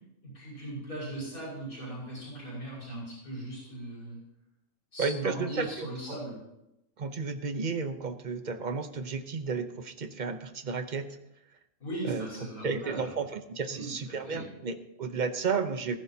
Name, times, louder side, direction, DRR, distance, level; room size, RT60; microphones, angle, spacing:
voice 1, 0.2-4.2 4.9-6.4 11.8-13.1 13.7-13.9 14.3-14.5, right 1 dB, 85° left, -6 dB, 6.0 m, -38 dB
voice 2, 5.0-6.2 7.0-11.1 12.0-12.3 12.6-16.0, right 5 dB, 40° right, 9 dB, 0.8 m, -33 dB
15.0 x 14.5 x 2.8 m, 0.86 s
omnidirectional pair, 1.4 m